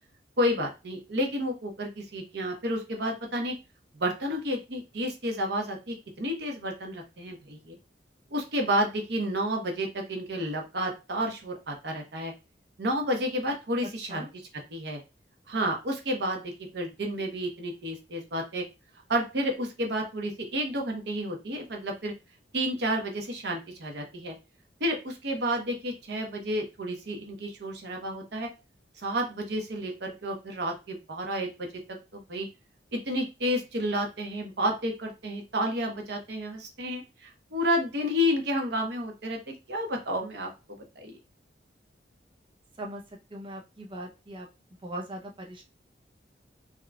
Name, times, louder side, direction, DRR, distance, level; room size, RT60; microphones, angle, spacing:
voice 1, 0.4-3.5 3.9-7.8 8.3-12.3 12.8-14.2 14.7-15.0 15.5-18.6 19.1-22.1 22.5-24.3 24.8-28.5 29.0-31.7 32.1-32.5 32.9-40.5 41.0-41.2, equal, 65° right, 2 dB, 0.8 m, -30 dB
voice 2, 42.8-44.5 44.8-45.6, right 1 dB, 30° right, 0 dB, 0.5 m, -40 dB
3.7 x 2.2 x 2.2 m, 0.27 s
head